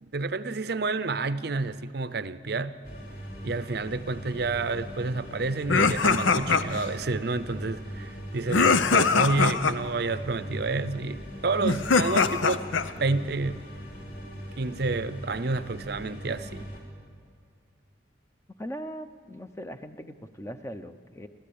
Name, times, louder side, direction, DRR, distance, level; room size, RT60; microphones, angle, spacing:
voice 1, 0.0-2.8 3.4-12.6 13.0-13.7 14.6-16.7, right 3 dB, 55° right, 14 dB, 0.6 m, -29 dB
sound 1, 2.8-16.8, equal, 45° left, 4.1 m, -40 dB
sound 2, 5.7-6.9 8.5-9.7 11.6-12.9, left 4 dB, 80° left, 0.8 m, -22 dB
voice 2, 18.6-21.3, equal, 15° left, 9 dB, 0.7 m, -39 dB
29.5 x 13.0 x 8.7 m, 2.2 s
head